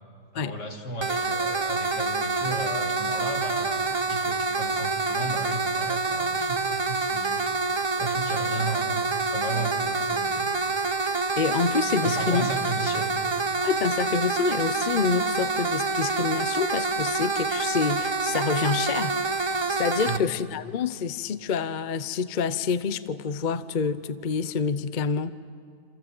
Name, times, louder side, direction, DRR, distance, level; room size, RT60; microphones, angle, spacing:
voice 1, 0.3-7.4 8.0-10.5 12.0-13.1 20.1-20.2, right 1 dB, 75° left, 3.3 m, -34 dB
sound 1, 1.0-20.2, right 3 dB, 45° right, 0.3 m, -27 dB
voice 2, 11.4-12.5 13.6-19.2 19.5-25.3, left 6 dB, 50° left, 0.6 m, -27 dB
27.5 x 26.5 x 7.7 m
omnidirectional pair, 1.8 m